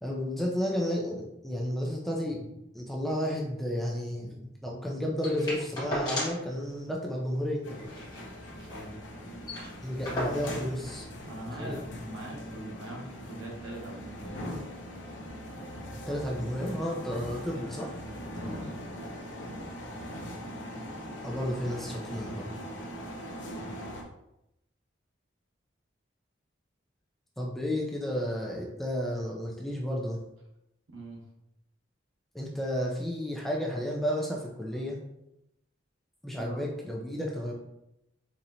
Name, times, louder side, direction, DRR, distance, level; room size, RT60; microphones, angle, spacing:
voice 1, 0.0-2.5 2.7-7.9 9.8-11.1 11.6-11.8 16.1-17.9 21.2-22.5 27.4-30.2 32.3-35.0 36.2-37.5, equal, ahead, -3 dB, 0.5 m, -32 dB
sound 1, 5.2-6.5 6.8-6.9 7.2-7.4 7.8-8.9 9.2-9.3 9.4-10.7 11.6-11.7, left 1 dB, 20° left, 1.2 m, -36 dB
sound 2, 7.6-24.0, equal, 70° left, 0.6 m, -41 dB
voice 2, 8.5-9.0 10.0-10.1 11.3-11.8 12.1-14.4 17.5-17.7 18.3-18.9 30.9-31.2 36.3-36.6, right 1 dB, 85° right, -1 dB, 1.0 m, -43 dB
4.2 x 2.9 x 2.6 m, 0.86 s
head